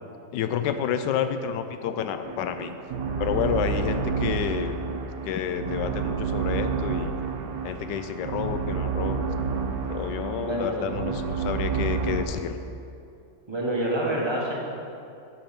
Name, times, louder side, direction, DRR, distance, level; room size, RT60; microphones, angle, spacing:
voice 1, 0.3-2.7 3.2-4.8 5.2-7.1 7.6-9.2 9.9-12.6, left 8 dB, 85° left, 9 dB, 1.2 m, -29 dB
sound 1, 2.2-12.2, right 5 dB, 85° right, 1.3 m, -29 dB
voice 2, 10.4-10.8 13.5-14.5, right 1 dB, 20° right, -3 dB, 1.0 m, -27 dB
8.6 x 5.3 x 5.8 m, 2.6 s
omnidirectional pair, 1.8 m